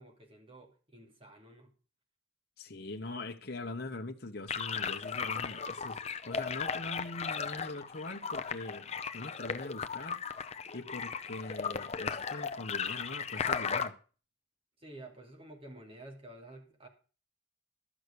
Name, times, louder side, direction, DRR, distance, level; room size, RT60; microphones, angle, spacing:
voice 1, 0.0-1.7 14.8-16.9, right 1 dB, 30° right, 2.7 m, -51 dB
voice 2, 2.6-10.2 10.7-14.0, left 2 dB, 55° left, 1.0 m, -42 dB
sound 1, 4.5-13.9, left 6 dB, 35° left, 0.7 m, -36 dB
12.5 x 6.4 x 6.8 m
head